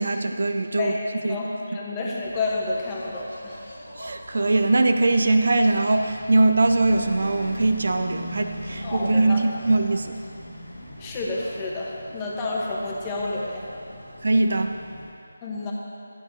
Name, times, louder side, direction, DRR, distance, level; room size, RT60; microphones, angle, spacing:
voice 1, 0.0-0.9 1.2-1.4 4.0-10.2 14.2-14.8, right 2 dB, 60° right, 7 dB, 0.5 m, -21 dB
voice 2, 0.7-3.6 8.8-9.4 11.0-13.7 15.4-15.7, left 2 dB, 20° left, -3 dB, 1.2 m, -30 dB
Engine, 2.2-15.1, left 1 dB, 90° left, 1.8 m, -40 dB
12.5 x 9.8 x 3.2 m, 2.6 s
figure-of-eight pair, 160°, 0 cm